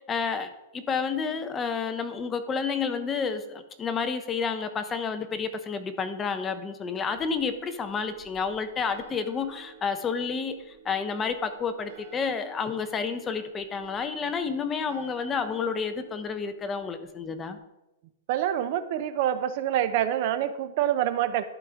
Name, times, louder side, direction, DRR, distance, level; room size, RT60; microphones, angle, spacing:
voice 1, 0.1-17.6, left 5 dB, 15° left, 10 dB, 0.5 m, -30 dB
sound 1, 7.0-17.6, right 6 dB, 60° right, 3.2 m, -52 dB
voice 2, 18.3-21.4, right 11 dB, 45° right, 12 dB, 0.5 m, -26 dB
12.0 x 4.8 x 3.6 m, 0.95 s
hypercardioid pair, 160°, 0 cm